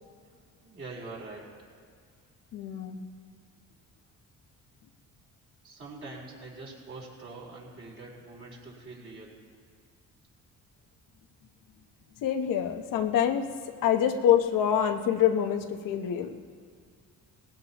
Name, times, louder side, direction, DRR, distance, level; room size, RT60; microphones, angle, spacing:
voice 1, 0.6-1.5 5.6-9.3, right 3 dB, 40° right, -4 dB, 4.3 m, -44 dB
voice 2, 2.5-3.0 12.2-13.5 13.8-16.3, left 9 dB, 85° left, 5 dB, 1.0 m, -26 dB
19.5 x 16.5 x 3.0 m, 2.1 s
cardioid pair, 125°, 32 cm